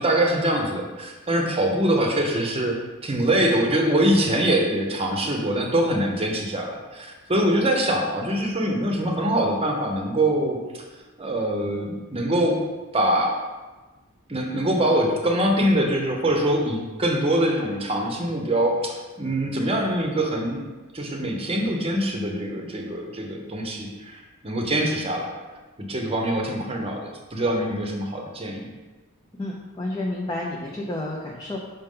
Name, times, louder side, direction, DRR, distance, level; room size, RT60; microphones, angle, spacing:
voice 1, 0.0-10.8 11.2-12.6 12.9-13.4 14.3-20.6 20.9-25.3 25.8-28.7, right 1 dB, 25° right, 2 dB, 0.8 m, -24 dB
voice 2, 29.4-31.6, left 1 dB, 20° left, -2 dB, 0.5 m, -30 dB
5.6 x 5.3 x 3.7 m, 1.2 s
head